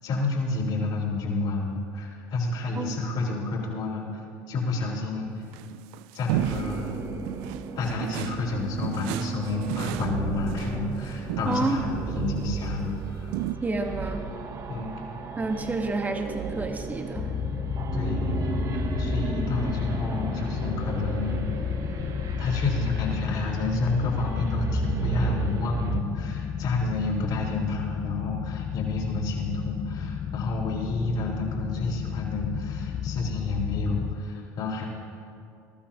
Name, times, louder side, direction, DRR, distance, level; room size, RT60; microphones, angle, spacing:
voice 1, 0.0-4.2 4.5-5.4 6.1-6.9 7.8-13.3 14.7-14.9 17.9-18.4 19.0-21.8 22.4-34.9, left 3 dB, 55° left, -3 dB, 4.0 m, -30 dB
sound 1, 5.4-6.9 7.2-8.5 8.8-11.7 12.3-12.6 13.3-13.6, right 15 dB, 75° right, 0.4 m, -33 dB
sound 2, 6.3-26.0, right 4 dB, 40° right, 1.1 m, -34 dB
voice 2, 11.4-11.8 13.6-14.2 15.4-17.3, right 3 dB, 20° right, 4 dB, 1.5 m, -29 dB
sound 3, 17.2-34.1, left 9 dB, 40° left, 0.7 m, -32 dB
22.5 x 13.0 x 3.0 m, 2.6 s
supercardioid pair, 95°, 9 cm